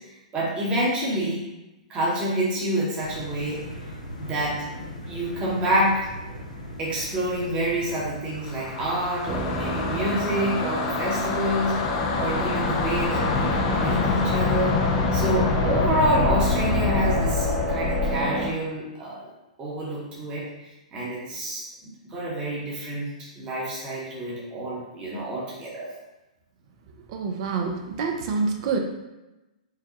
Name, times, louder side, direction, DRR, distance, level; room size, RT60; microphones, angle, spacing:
voice 1, 0.3-1.4 1.9-3.6 4.2-4.6 5.1-6.1 6.8-19.3 19.6-20.5 20.9-23.1 23.4-25.9, right 1 dB, 25° right, -6 dB, 1.0 m, -27 dB
sound 1, 3.0-10.0, equal, 85° left, 0.8 m, -39 dB
sound 2, 8.4-18.2, left 5 dB, 45° left, 0.5 m, -26 dB
sound 3, 9.3-18.5, equal, 10° right, 0.6 m, -29 dB
voice 2, 27.1-28.8, right 4 dB, 50° right, 4 dB, 0.5 m, -27 dB
4.7 x 2.2 x 2.8 m, 1.0 s
hypercardioid pair, 115°, 4 cm